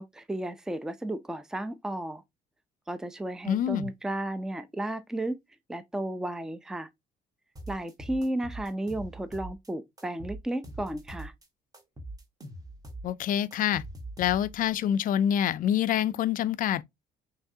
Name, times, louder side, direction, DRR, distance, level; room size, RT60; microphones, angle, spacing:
voice 1, 0.0-2.2 2.9-5.4 5.7-6.9 7.7-11.3, right 1 dB, 5° right, 0.5 m, -33 dB
voice 2, 3.5-3.9 13.0-13.8 14.2-16.8, left 10 dB, 55° left, 0.4 m, -26 dB
sound 1, 7.6-9.7 10.0-11.5 11.7-14.7, right 1 dB, 20° right, 1.4 m, -42 dB
5.6 x 3.2 x 2.7 m
cardioid pair, 110°, 17 cm